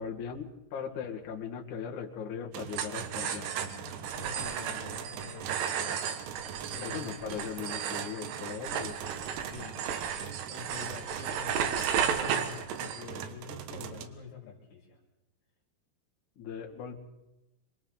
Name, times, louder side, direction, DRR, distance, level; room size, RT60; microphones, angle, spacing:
voice 1, 0.0-3.5 6.8-9.0 16.4-16.9, left 7 dB, 50° left, 1 dB, 2.9 m, -39 dB
sound 1, 2.5-14.1, right 8 dB, 85° right, 3.8 m, -43 dB
sound 2, 2.7-13.3, right 8 dB, 65° right, 3.1 m, -34 dB
voice 2, 3.2-6.1 6.7-6.9 7.3-7.6 8.7-9.0 9.4-10.1 10.5-15.0, left 7 dB, 75° left, -2 dB, 5.0 m, -47 dB
26.5 x 26.0 x 4.1 m, 0.98 s
omnidirectional pair, 5.6 m